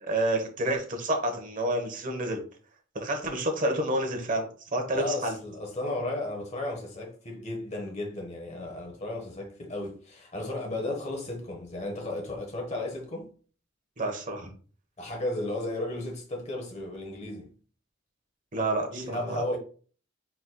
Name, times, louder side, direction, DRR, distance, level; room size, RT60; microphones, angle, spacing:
voice 1, 0.0-2.4 2.9-5.3 14.0-14.5 18.5-19.4, right 1 dB, 40° right, 0.9 m, -29 dB
voice 2, 4.9-13.3 15.0-17.5 18.9-19.6, left 1 dB, 35° left, 1.1 m, -34 dB
4.5 x 4.1 x 2.2 m
head